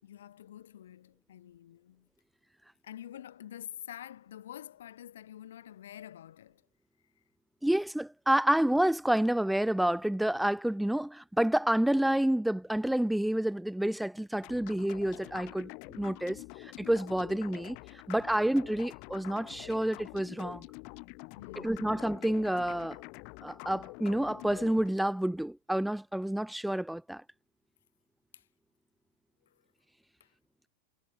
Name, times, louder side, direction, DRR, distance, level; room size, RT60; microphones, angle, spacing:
voice 1, 0.0-2.1 2.8-6.7 21.4-22.0 28.3-28.5 29.4-29.6 30.2-30.3, left 11 dB, 60° left, 3.6 m, -48 dB
voice 2, 7.6-17.8 18.1-20.7 21.6-23.0 23.4-27.2, right 1 dB, ahead, 0.3 m, -29 dB
sound 1, 14.4-24.9, left 38 dB, 45° left, 1.8 m, -47 dB
figure-of-eight pair, 90°, 0 cm